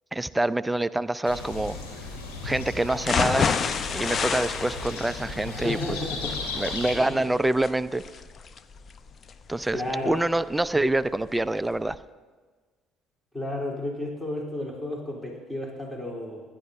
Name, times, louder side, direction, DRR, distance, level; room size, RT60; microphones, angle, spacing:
voice 1, 0.1-1.8 2.4-3.5 3.9-6.0 6.5-8.0 9.5-12.0, right 1 dB, 10° right, 15 dB, 0.5 m, -26 dB
sound 1, 1.2-7.0, left 3 dB, 75° left, 2.4 m, -36 dB
sound 2, 3.1-11.0 11.4-11.5 11.9-12.0, left 6 dB, 40° left, 0.6 m, -30 dB
voice 2, 5.4-6.4 6.9-7.2 9.7-10.2 13.3-16.4, left 1 dB, 15° left, -2 dB, 3.3 m, -32 dB
26.5 x 11.5 x 2.6 m, 1.4 s
hypercardioid pair, 55°, 0 cm